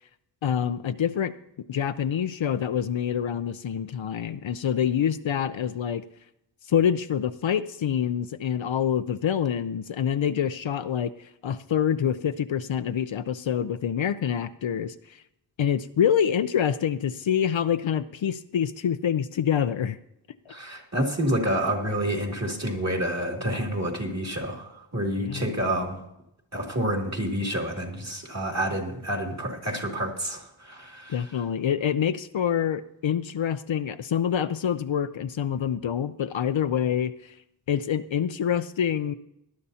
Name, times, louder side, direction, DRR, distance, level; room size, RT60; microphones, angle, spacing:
voice 1, 0.4-1.3 1.7-6.0 6.7-15.2 15.6-20.0 20.5-20.6 25.2-25.4 31.1-37.4 37.7-39.1, left 8 dB, 75° left, 10 dB, 0.6 m, -26 dB
voice 2, 20.5-26.0 26.5-31.2, equal, 35° right, 0 dB, 2.8 m, -28 dB
19.0 x 11.5 x 2.8 m, 0.82 s
wide cardioid pair, 60°, 47 cm